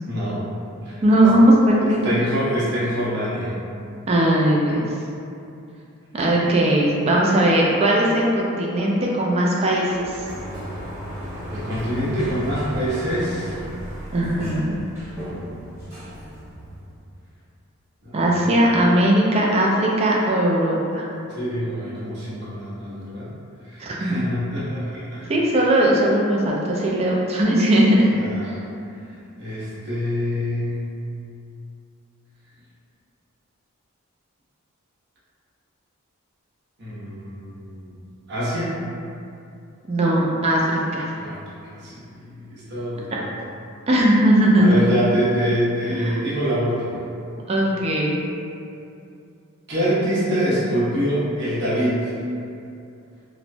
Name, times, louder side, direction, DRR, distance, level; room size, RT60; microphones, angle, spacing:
voice 1, 0.1-0.5 0.8-1.0 2.0-3.5 11.5-13.6 18.0-18.5 21.3-23.3 23.6-25.3 28.2-28.5 29.4-30.8 36.8-37.9 38.3-38.8 41.2-41.5 41.8-43.3 44.6-47.0 49.7-52.1, equal, 50° right, -9 dB, 0.8 m, -25 dB
voice 2, 1.0-2.1 4.1-4.8 6.1-10.2 14.1-14.7 18.1-21.1 23.8-24.2 25.3-28.1 28.4-28.5 39.9-41.1 43.9-44.7 45.9-46.2 47.5-48.2, right 1 dB, 30° right, -3 dB, 0.3 m, -19 dB
Sliding door, 9.9-17.0, equal, 15° right, 0.8 m, -35 dB
3.0 x 2.1 x 2.5 m, 2.6 s
head